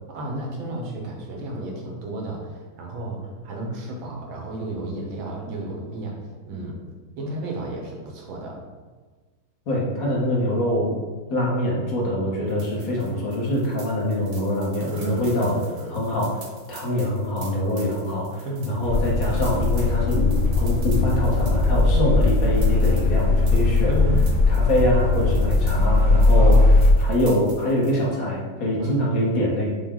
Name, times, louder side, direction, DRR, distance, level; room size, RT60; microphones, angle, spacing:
voice 1, 0.1-6.2 6.5-6.8 7.2-8.6 14.9-16.0 18.4-18.9 21.9-22.2 23.9-24.3 26.4-26.7 28.8-29.3, right 1 dB, 90° right, -1 dB, 1.7 m, -32 dB
voice 2, 9.7-10.9 11.3-15.6 15.9-16.4 16.7-24.0 24.5-26.5 27.0-29.7, left 1 dB, 55° left, -3 dB, 1.2 m, -24 dB
sound 1, 12.5-28.0, right 4 dB, 60° right, 1.0 m, -47 dB
sound 2, 18.8-26.9, left 3 dB, 90° left, 1.4 m, -19 dB
6.0 x 2.2 x 3.6 m, 1.4 s
omnidirectional pair, 2.1 m